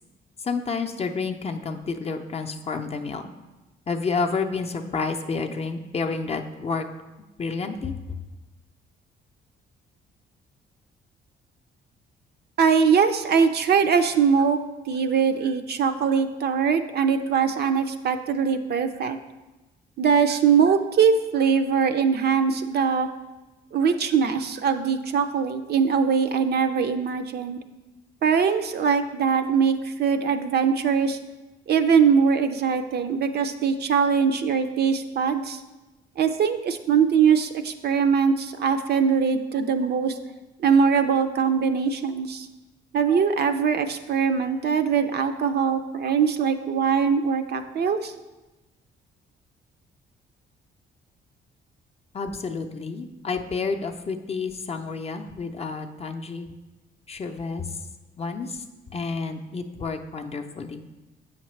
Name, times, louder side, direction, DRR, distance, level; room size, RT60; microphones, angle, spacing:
voice 1, 0.4-3.3 3.9-6.8 7.4-8.0 52.1-56.5 57.1-57.7 58.2-58.6 58.9-60.8, left 4 dB, 30° left, 4 dB, 0.5 m, -30 dB
voice 2, 12.6-14.6 14.9-19.2 20.0-23.1 23.7-27.6 28.2-31.2 31.7-35.6 36.2-40.2 40.6-42.5 42.9-48.1, right 6 dB, 55° right, 8 dB, 0.5 m, -22 dB
7.7 x 5.8 x 3.2 m, 1.1 s
cardioid pair, 90°, 20 cm